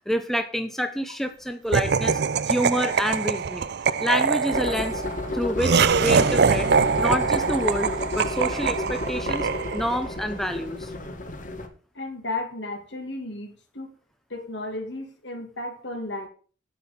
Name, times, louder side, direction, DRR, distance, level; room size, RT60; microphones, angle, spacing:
voice 1, 0.1-5.0 5.3-6.7 7.0-10.9, equal, ahead, 7 dB, 0.7 m, -28 dB
Laughter, 1.7-10.1, right 5 dB, 55° right, 0.5 m, -23 dB
sound 1, 4.5-11.7, left 2 dB, 40° left, 1.5 m, -32 dB
voice 2, 11.9-13.9 14.3-16.3, left 2 dB, 65° left, 5 dB, 2.6 m, -34 dB
10.0 x 8.5 x 5.3 m, 0.41 s
head